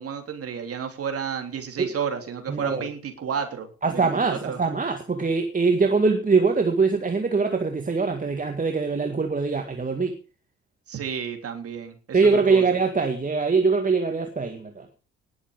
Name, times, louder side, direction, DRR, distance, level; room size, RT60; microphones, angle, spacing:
voice 1, 0.0-3.7 3.9-4.6 10.9-12.6, right 7 dB, 45° right, 3.4 m, -32 dB
voice 2, 2.5-2.9 3.8-10.2 12.1-14.9, right 4 dB, 25° right, 2.0 m, -23 dB
19.5 x 7.2 x 5.2 m
figure-of-eight pair, 45°, 33 cm